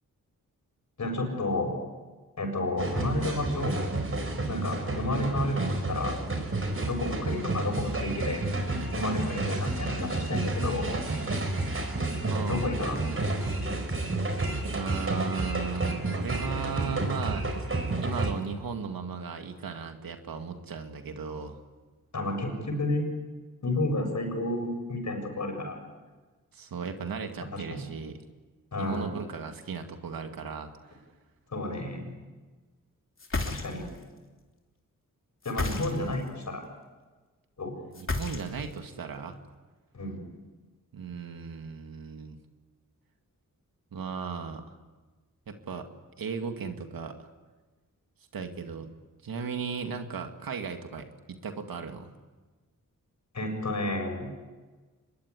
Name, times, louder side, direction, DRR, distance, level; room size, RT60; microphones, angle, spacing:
voice 1, 1.0-1.7 2.4-3.8 4.5-6.1 6.8-8.5 8.9-10.9 12.5-13.0 22.1-23.1 23.6-25.8 27.5-27.8 28.7-29.1 31.5-32.1 33.4-33.9 35.4-36.6 37.6-37.7 39.9-40.2 53.3-54.3, left 1 dB, 55° left, 3 dB, 7.3 m, -31 dB
sound 1, 2.8-18.3, right 2 dB, 40° right, 4.5 m, -30 dB
voice 2, 12.3-12.7 14.7-17.5 18.0-21.6 26.5-28.2 28.8-31.0 35.7-36.2 37.9-39.4 40.9-42.4 43.9-44.8 45.5-45.9 46.2-47.3 48.3-48.9 49.2-52.1, right 5 dB, 85° right, 6 dB, 2.3 m, -36 dB
sound 2, 33.2-34.0 35.4-36.3 37.9-38.8, left 3 dB, 40° left, 3.1 m, -32 dB
25.0 x 21.5 x 9.9 m, 1.3 s
wide cardioid pair, 85°, 34 cm